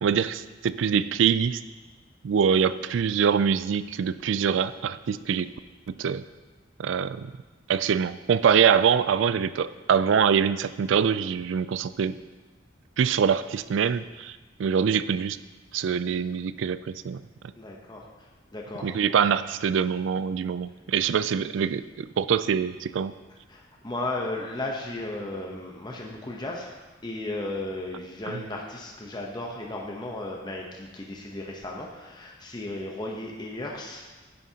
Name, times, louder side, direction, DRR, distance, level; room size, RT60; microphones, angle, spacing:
voice 1, 0.0-1.6 2.2-5.5 5.9-6.2 6.8-7.3 7.7-12.2 13.0-15.4 15.7-17.2 18.8-23.1 28.3-28.4, right 7 dB, 70° right, 15 dB, 0.3 m, -24 dB
voice 2, 17.6-18.9 23.5-26.7 27.0-34.2, left 2 dB, 20° left, -1 dB, 0.8 m, -35 dB
11.0 x 9.2 x 2.8 m, 1.3 s
head